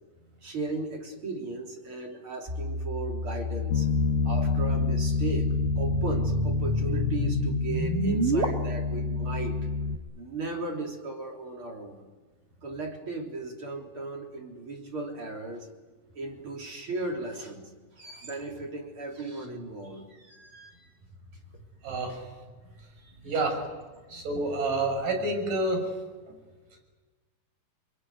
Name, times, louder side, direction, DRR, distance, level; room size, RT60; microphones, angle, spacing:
voice 1, 0.4-3.9 4.3-9.6 10.2-12.1 12.6-15.7 16.1-17.6 18.0-20.7 23.3-23.4, right 3 dB, 40° right, 1 dB, 4.2 m, -36 dB
sound 1, 2.5-8.5, equal, 25° right, 1.6 m, -31 dB
Bass guitar, 3.7-10.0, left 3 dB, 70° left, 2.6 m, -28 dB
voice 2, 21.8-22.2 23.2-23.6 24.1-25.8, right 2 dB, 80° right, 4 dB, 7.7 m, -28 dB
26.5 x 23.0 x 9.7 m, 1.3 s
omnidirectional pair, 3.7 m